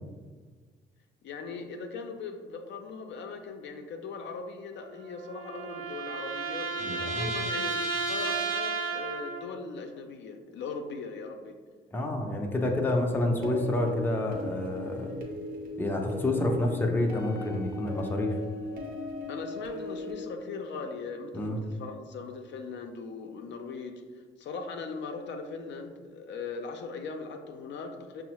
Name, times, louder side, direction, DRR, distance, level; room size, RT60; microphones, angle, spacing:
voice 1, 1.2-11.6 19.3-28.2, left 4 dB, 65° left, 4 dB, 0.4 m, -39 dB
sound 1, 4.8-9.6, right 4 dB, 90° right, 0.5 m, -33 dB
voice 2, 6.8-7.3 11.9-15.1 15.8-18.4 21.3-21.6, left 1 dB, 10° left, 1 dB, 0.5 m, -28 dB
sound 2, 13.4-20.2, left 2 dB, 45° right, 0.8 m, -38 dB
5.3 x 2.0 x 2.9 m, 1.5 s
cardioid pair, 90°, 20 cm